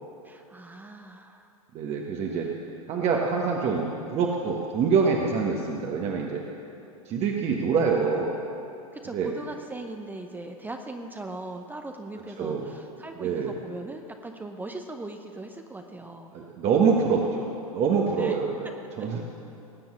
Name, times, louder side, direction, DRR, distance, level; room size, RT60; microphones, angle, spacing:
voice 1, 0.2-1.5 8.9-16.3 18.2-18.3, right 2 dB, 10° right, 5 dB, 0.8 m, -39 dB
voice 2, 1.7-2.5 2.9-6.4 7.0-8.4 9.1-9.3 12.4-12.7 13.2-13.5 16.3-17.5 17.7-18.5 19.0-19.2, right 5 dB, 35° right, 0 dB, 1.4 m, -25 dB
19.5 x 7.8 x 7.3 m, 2.7 s
hypercardioid pair, 95°, 18 cm